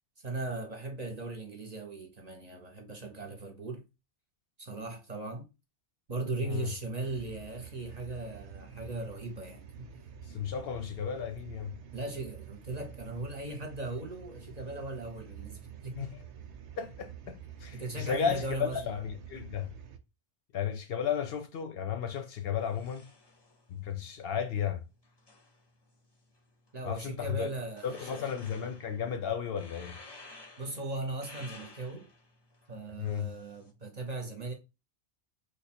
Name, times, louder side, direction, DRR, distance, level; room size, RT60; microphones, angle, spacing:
voice 1, 0.2-3.8 4.6-5.4 6.1-9.9 11.9-16.1 17.7-18.8 26.7-28.3 30.6-32.1 32.7-34.5, right 2 dB, 40° right, 0.7 m, -38 dB
sound 1, 7.0-20.0, right 8 dB, 85° right, 0.9 m, -49 dB
voice 2, 10.3-11.8 16.0-16.2 16.8-19.7 20.5-23.1 23.7-24.8 26.8-27.5 27.8-30.0 33.0-33.3, left 7 dB, 65° left, 0.7 m, -34 dB
sound 2, 22.6-33.7, left 3 dB, 30° left, 0.6 m, -55 dB
3.2 x 2.2 x 4.2 m
omnidirectional pair, 1.2 m